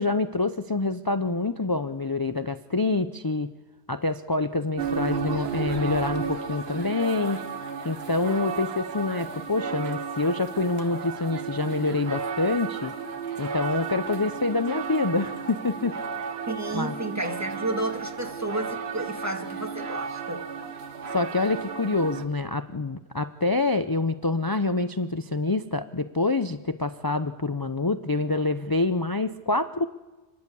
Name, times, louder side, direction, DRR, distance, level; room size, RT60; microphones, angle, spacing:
voice 1, 0.0-3.5 3.9-7.4 7.8-12.9 13.4-15.9 16.7-16.9 21.1-29.8, left 3 dB, 30° left, 10 dB, 0.5 m, -26 dB
sound 1, 4.8-22.3, right 6 dB, 65° right, 1.4 m, -33 dB
voice 2, 16.5-20.4, right 2 dB, 15° right, 4 dB, 1.7 m, -31 dB
29.5 x 11.0 x 8.4 m, 1.2 s
omnidirectional pair, 1.1 m